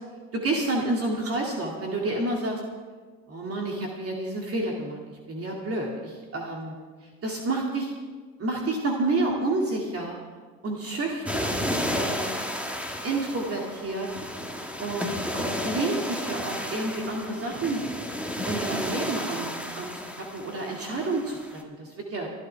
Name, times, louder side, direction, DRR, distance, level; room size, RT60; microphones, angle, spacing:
voice 1, 0.3-2.6 3.3-6.8 7.2-7.9 8.4-10.2 10.6-12.2 13.0-14.1 14.8-17.8 18.4-22.3, right 2 dB, 35° right, -1 dB, 2.5 m, -29 dB
sound 1, 11.3-21.6, equal, 5° right, 1.8 m, -32 dB
26.0 x 12.0 x 3.5 m, 1.5 s
hypercardioid pair, 85°, 41 cm